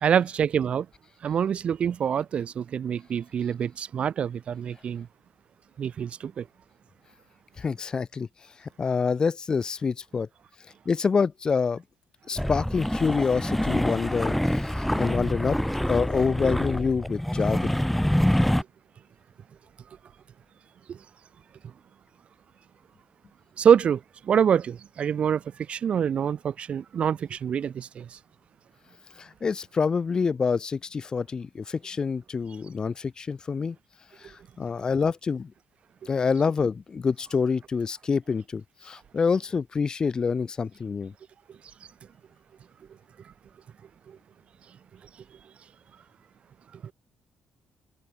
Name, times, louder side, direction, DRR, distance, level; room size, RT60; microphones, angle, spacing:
voice 1, 0.0-0.9 1.2-5.1 5.8-6.5 20.9-21.0 23.6-25.4 25.7-28.2, right 8 dB, 40° right, 1.7 m, -25 dB
voice 2, 7.6-8.3 8.6-10.3 10.9-11.8 12.3-15.6 15.9-17.8 29.2-33.8 34.2-35.5 36.1-41.1, left 5 dB, 25° left, 1.8 m, -27 dB
sound 1, 12.4-18.6, equal, ahead, 0.9 m, -26 dB
cardioid pair, 175°, 3 cm